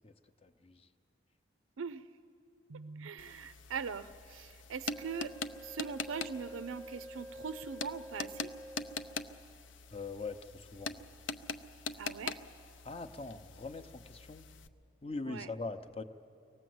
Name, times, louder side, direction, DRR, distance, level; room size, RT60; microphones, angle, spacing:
voice 1, 0.4-0.9 9.9-11.0 12.8-14.5 15.0-16.0, left 3 dB, 30° left, 8 dB, 0.6 m, -42 dB
voice 2, 1.8-2.1 2.7-8.5 12.0-12.4 15.3-15.5, right 6 dB, 90° right, 13 dB, 0.5 m, -42 dB
sound 1, 3.2-14.7, left 4 dB, 75° left, 0.7 m, -44 dB
Wind instrument woodwind instrument, 4.9-9.5, equal, 10° right, 0.8 m, -49 dB
24.5 x 18.5 x 7.8 m, 2.6 s
head